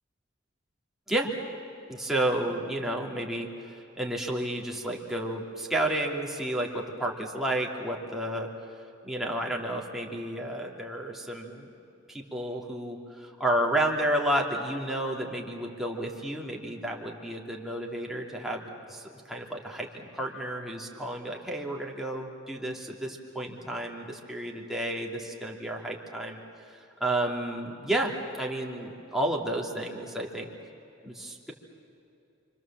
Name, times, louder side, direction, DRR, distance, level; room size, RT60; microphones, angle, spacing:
voice 1, 1.9-8.5 9.0-11.7 12.1-18.6 18.9-26.4 26.7-30.5 31.0-31.5, right 1 dB, ahead, -1 dB, 2.8 m, -31 dB
29.5 x 25.5 x 7.5 m, 2.8 s
head